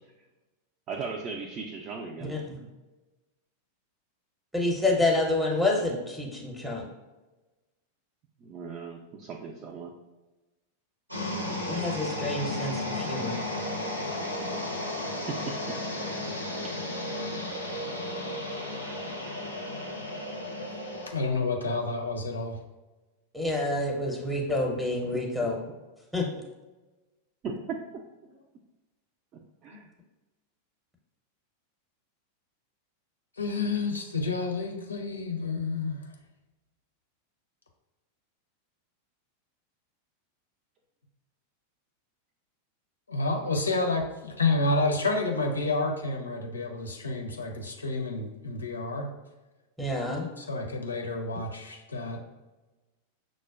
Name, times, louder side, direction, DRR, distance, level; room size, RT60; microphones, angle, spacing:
voice 1, 0.9-2.7 8.4-9.9 15.3-15.8 16.6-16.8 25.1-25.2 27.4-27.8 29.3-29.9, right 5 dB, 35° right, 1 dB, 0.4 m, -38 dB
voice 2, 4.5-6.9 11.6-13.4 23.3-25.6 26.1-26.3 49.8-50.3, left 2 dB, ahead, -1 dB, 0.7 m, -28 dB
sound 1, 11.1-21.1, left 1 dB, 85° right, 0.6 m, -34 dB
voice 3, 21.1-22.6 29.7-29.8 33.4-36.1 43.1-49.1 50.4-52.2, left 3 dB, 75° left, 2 dB, 0.5 m, -29 dB
6.1 x 2.1 x 2.3 m, 1.1 s
figure-of-eight pair, 90°, 0 cm